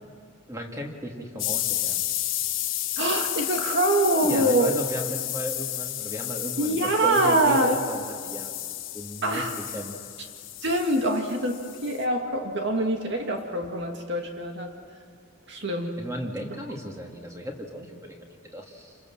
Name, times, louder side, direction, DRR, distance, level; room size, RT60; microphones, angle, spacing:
voice 1, 0.5-2.0 4.1-8.5 8.9-9.5 9.7-9.9 16.0-19.0, right 1 dB, 15° right, 1 dB, 2.3 m, -34 dB
sound 1, 1.4-12.0, left 13 dB, 65° left, 2.1 m, -32 dB
voice 2, 3.0-4.7 6.6-7.8 9.2-9.5 10.6-14.7 15.5-15.9, right 1 dB, 55° right, 3 dB, 2.0 m, -24 dB
28.5 x 25.0 x 7.3 m, 2.1 s
head